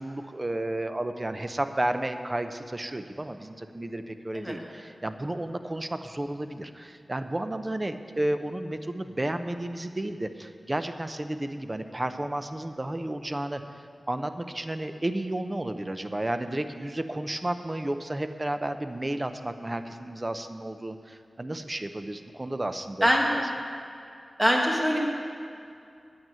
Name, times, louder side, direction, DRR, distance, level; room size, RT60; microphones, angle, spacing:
voice 1, 0.0-23.4, right 1 dB, 25° right, 8 dB, 0.6 m, -32 dB
voice 2, 24.4-25.0, equal, 10° right, -1 dB, 1.6 m, -23 dB
9.1 x 9.0 x 9.4 m, 2.4 s
wide cardioid pair, 100°, 0 cm